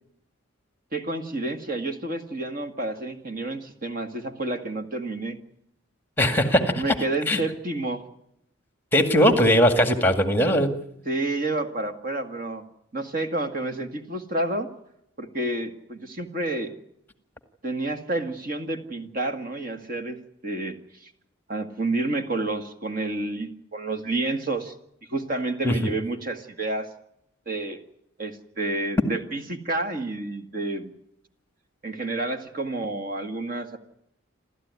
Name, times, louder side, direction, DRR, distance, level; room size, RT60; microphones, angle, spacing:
voice 1, 0.9-5.4 6.8-8.1 11.1-12.6 12.9-14.7 15.2-16.7 17.6-20.2 20.4-21.1 21.5-24.7 25.1-26.9 27.5-27.8 28.2-30.9 31.8-33.8, right 2 dB, 45° right, 6 dB, 1.9 m, -29 dB
voice 2, 6.2-6.8 7.3-7.4 8.9-10.7 25.6-25.8, equal, 10° left, 7 dB, 2.0 m, -19 dB
29.0 x 13.5 x 9.6 m, 0.79 s
head